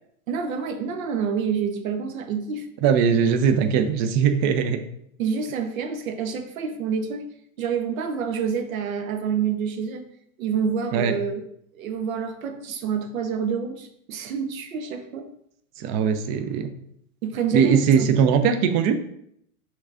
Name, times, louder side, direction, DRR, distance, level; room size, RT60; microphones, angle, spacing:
voice 1, 0.3-2.7 5.2-7.3 7.6-10.0 10.4-11.4 11.7-15.3 17.2-18.1, right 6 dB, 75° right, 7 dB, 0.8 m, -28 dB
voice 2, 2.8-4.8 10.9-11.2 15.8-16.7 17.5-19.0, right 7 dB, 35° right, 9 dB, 0.5 m, -20 dB
6.0 x 3.4 x 2.4 m, 0.72 s
hypercardioid pair, 115°, 42 cm